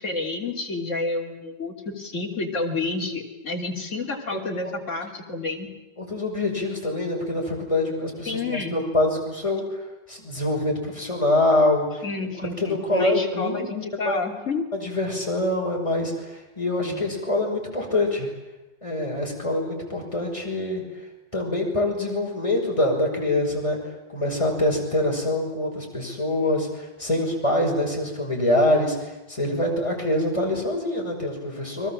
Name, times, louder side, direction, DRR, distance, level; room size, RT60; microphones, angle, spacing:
voice 1, 0.0-5.7 8.3-8.8 12.0-14.7 16.8-17.0, left 3 dB, 40° left, 0 dB, 3.6 m, -30 dB
voice 2, 6.0-9.8 10.1-12.0 12.6-13.7 14.0-14.2 14.7-18.3 18.8-20.8 21.3-23.8 24.1-31.9, left 1 dB, 15° left, 0 dB, 5.9 m, -25 dB
29.5 x 23.0 x 7.6 m, 1.1 s
omnidirectional pair, 2.0 m